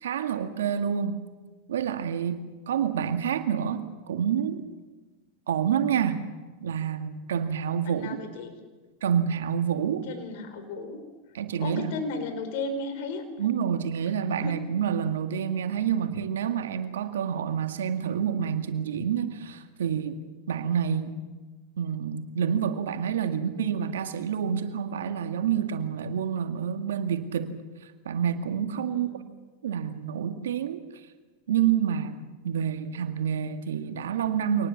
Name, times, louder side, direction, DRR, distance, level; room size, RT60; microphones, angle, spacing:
voice 1, 0.0-1.2 1.7-4.6 5.5-6.3 6.6-8.2 9.0-10.1 11.3-11.9 13.4-20.2 20.5-21.2 21.8-27.6 28.1-29.1 29.6-30.8 31.5-34.7, right 8 dB, 80° right, 8 dB, 2.0 m, -28 dB
voice 2, 7.9-8.6 10.0-11.0 11.6-13.2 14.4-14.7 23.2-23.3 28.9-29.2, left 3 dB, 65° left, 8 dB, 4.4 m, -35 dB
25.5 x 19.0 x 7.3 m, 1.3 s
hypercardioid pair, 100°, 0 cm